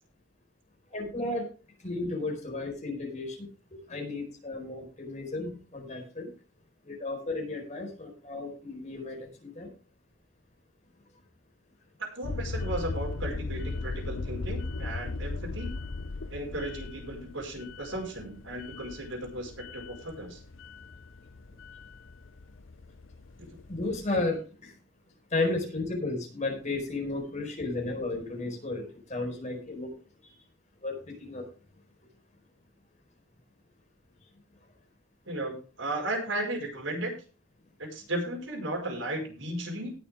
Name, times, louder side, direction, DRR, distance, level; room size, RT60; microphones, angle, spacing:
voice 1, 0.9-1.5 1.8-3.5 3.9-6.3 6.8-9.7 23.7-24.7 25.3-29.9 30.8-31.5, left 2 dB, 40° left, 2 dB, 4.6 m, -33 dB
voice 2, 12.0-15.8 16.3-20.4 23.4-23.5 35.3-37.1 37.8-39.9, right 1 dB, 85° right, 1 dB, 5.3 m, -35 dB
sound 1, 12.2-24.1, left 3 dB, 90° left, 0.7 m, -38 dB
18.5 x 7.1 x 3.7 m, 0.36 s
head